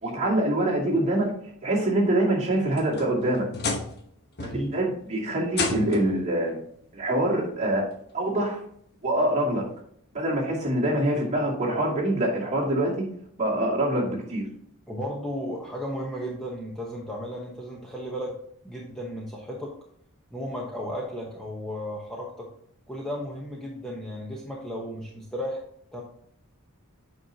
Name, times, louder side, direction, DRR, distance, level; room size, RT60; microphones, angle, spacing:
voice 1, 0.0-1.3 1.6-3.4 4.4-6.6 6.9-7.9 8.1-8.6 9.0-9.7 10.1-13.1 13.4-14.4, right 1 dB, 30° right, -5 dB, 2.4 m, -25 dB
sound 1, 2.5-4.1 4.4-4.8 5.5-6.2 7.4-7.5 8.1-8.2 9.8-9.9, left 3 dB, 45° left, 1.1 m, -32 dB
voice 2, 14.9-18.3 18.6-19.7 20.3-22.5 22.9-25.6 25.9-26.0, equal, ahead, -3 dB, 1.0 m, -34 dB
8.2 x 5.5 x 2.9 m, 0.67 s
head